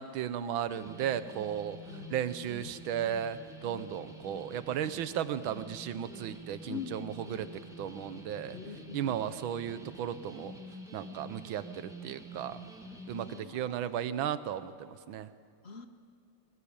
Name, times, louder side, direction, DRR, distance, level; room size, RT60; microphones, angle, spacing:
voice 1, 0.0-1.8 2.1-7.5 7.8-8.6 8.9-10.6 10.9-12.6 13.1-15.3, right 9 dB, 80° right, 14 dB, 1.6 m, -35 dB
sound 1, 0.7-13.4, equal, ahead, 1.6 m, -48 dB
voice 2, 1.9-2.7 6.7-7.5 8.5-9.2 13.1-14.0 15.6-15.9, left 6 dB, 45° left, 9 dB, 0.8 m, -45 dB
22.0 x 19.0 x 8.6 m, 2.3 s
omnidirectional pair, 2.2 m